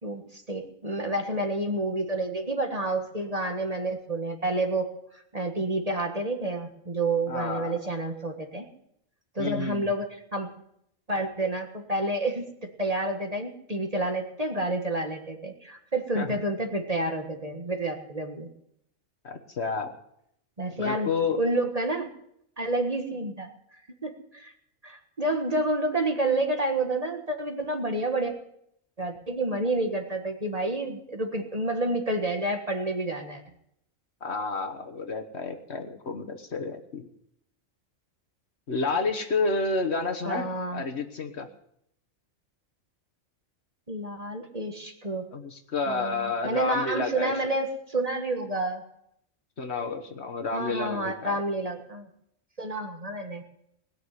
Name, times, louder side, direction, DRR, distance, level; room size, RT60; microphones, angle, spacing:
voice 1, 0.0-4.9 5.1-8.7 9.3-10.5 11.1-18.5 20.6-21.1 21.4-22.1 22.6-24.5 24.8-28.3 29.0-33.4 40.2-40.8 43.9-45.2 45.9-48.8 50.5-52.1 52.6-53.4, right 2 dB, 30° right, 4 dB, 1.6 m, -29 dB
voice 2, 7.3-7.7 9.4-9.9 16.1-16.4 19.2-20.0 20.7-21.4 34.2-37.1 38.7-41.5 45.3-47.5 49.6-51.4, left 4 dB, 55° left, 6 dB, 1.5 m, -30 dB
20.0 x 6.7 x 9.6 m, 0.75 s
omnidirectional pair, 1.4 m